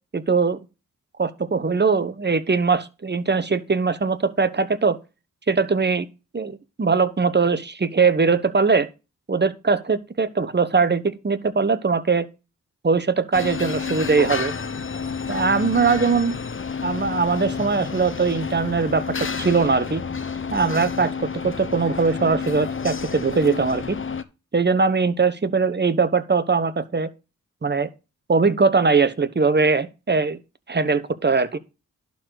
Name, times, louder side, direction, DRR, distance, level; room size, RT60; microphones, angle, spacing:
voice 1, 0.1-0.6 1.2-5.0 5.5-6.1 6.3-8.9 9.3-12.3 12.8-14.5 15.3-16.3 16.8-19.0 19.4-20.0 20.5-24.0 24.5-27.1 27.6-27.9 28.3-30.4 30.7-31.6, right 4 dB, 35° right, 1.1 m, -21 dB
sound 1, 13.3-24.2, left 5 dB, 40° left, 1.0 m, -30 dB
11.5 x 4.1 x 6.4 m
cardioid pair, 50°, 31 cm